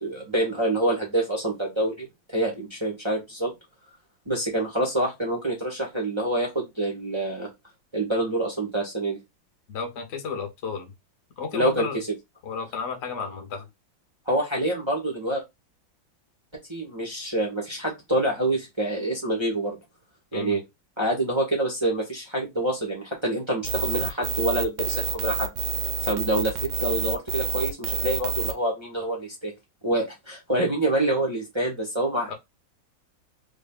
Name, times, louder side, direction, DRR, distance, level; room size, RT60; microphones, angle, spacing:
voice 1, 0.0-3.5 4.3-7.5 7.9-9.2 11.5-11.9 14.3-15.4 16.7-19.8 20.3-20.6 21.0-25.5 26.0-29.5 29.8-32.3, right 1 dB, 30° right, 0.5 m, -26 dB
voice 2, 9.7-10.9 11.4-12.0 12.4-13.7 20.3-20.6 32.3-32.4, left 6 dB, 55° left, 0.8 m, -32 dB
sound 1, 23.6-28.5, right 5 dB, 70° right, 1.2 m, -28 dB
3.5 x 2.3 x 3.6 m
omnidirectional pair, 2.2 m